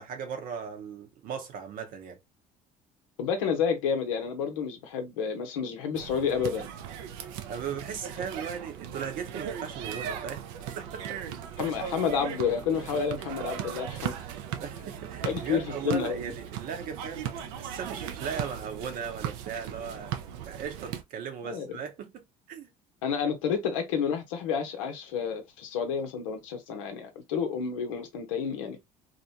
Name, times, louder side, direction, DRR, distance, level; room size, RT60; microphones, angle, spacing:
voice 1, 0.0-2.2 7.5-10.4 10.8-11.2 12.9-13.0 14.6-17.3 17.6-20.1 20.4-22.7, right 7 dB, 60° right, 0.8 m, -37 dB
voice 2, 3.2-6.7 11.6-14.1 15.2-16.3 21.4-21.7 23.0-28.8, left 6 dB, 90° left, 0.7 m, -30 dB
sound 1, 5.9-21.0, right 9 dB, 80° right, 0.5 m, -38 dB
2.6 x 2.1 x 2.7 m
hypercardioid pair, 70°, 16 cm